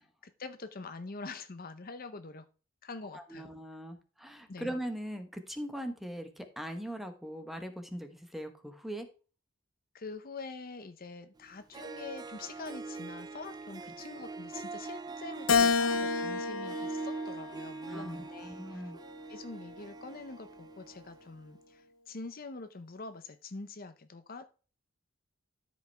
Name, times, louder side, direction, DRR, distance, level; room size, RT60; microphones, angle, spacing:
voice 1, 0.0-2.5 2.8-3.5 4.5-4.7 9.9-18.8 19.3-24.5, left 3 dB, 45° left, 10 dB, 0.7 m, -45 dB
voice 2, 3.1-9.1 17.9-19.0, equal, ahead, 7 dB, 1.1 m, -40 dB
Harp, 11.4-11.5 11.7-21.2, right 3 dB, 20° right, 0.4 m, -43 dB
Keyboard (musical), 15.5-18.0 18.6-19.8, left 5 dB, 85° left, 0.6 m, -30 dB
13.0 x 5.3 x 3.4 m, 0.37 s
head